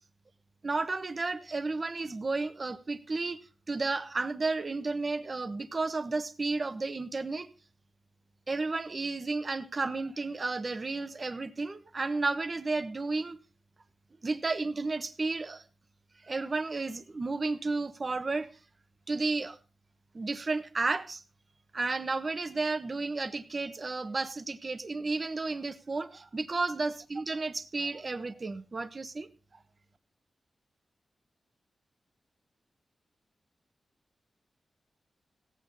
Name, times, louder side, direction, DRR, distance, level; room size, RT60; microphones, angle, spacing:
voice 1, 0.6-3.4 3.7-7.5 8.5-13.4 14.2-15.6 16.2-18.5 19.1-19.6 20.1-21.2 21.7-29.3, right 3 dB, 35° right, 12 dB, 1.2 m, -32 dB
17.0 x 9.0 x 5.5 m, 0.35 s
wide cardioid pair, 135°, 0 cm